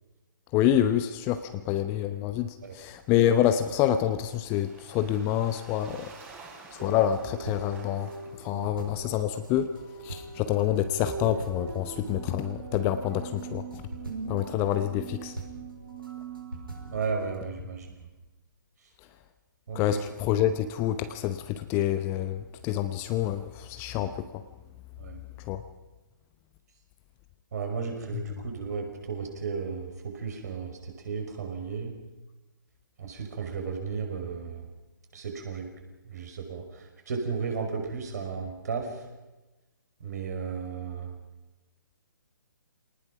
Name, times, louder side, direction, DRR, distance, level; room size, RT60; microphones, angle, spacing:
voice 1, 0.5-6.1 6.7-8.1 8.4-9.8 10.0-13.7 14.3-15.3 19.7-24.4 25.5-25.6, left 11 dB, 20° left, 10 dB, 0.9 m, -27 dB
Waves surf, 3.1-8.8, right 4 dB, 15° right, 4.2 m, -51 dB
sound 1, 6.8-17.4, right 3 dB, 90° right, 5.8 m, -40 dB
voice 2, 16.9-18.0 19.7-20.0 25.0-25.2 27.5-32.0 33.0-34.7 35.1-35.7 36.0-39.0 40.0-41.1, right 5 dB, 50° right, 3 dB, 5.4 m, -34 dB
26.5 x 19.0 x 6.0 m, 1.1 s
figure-of-eight pair, 135°, 11 cm